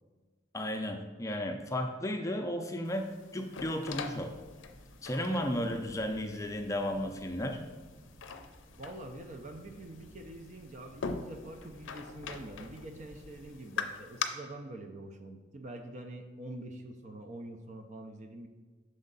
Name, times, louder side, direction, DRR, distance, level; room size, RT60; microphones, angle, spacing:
voice 1, 0.5-4.3 5.0-7.6, left 1 dB, 15° left, 4 dB, 0.5 m, -34 dB
sound 1, 2.8-14.2, left 6 dB, 90° left, 0.5 m, -43 dB
sound 2, 3.8-13.5, equal, 60° right, 0.9 m, -56 dB
voice 2, 8.8-18.5, right 1 dB, 40° right, 4 dB, 0.5 m, -45 dB
6.3 x 4.4 x 3.9 m, 1.4 s
head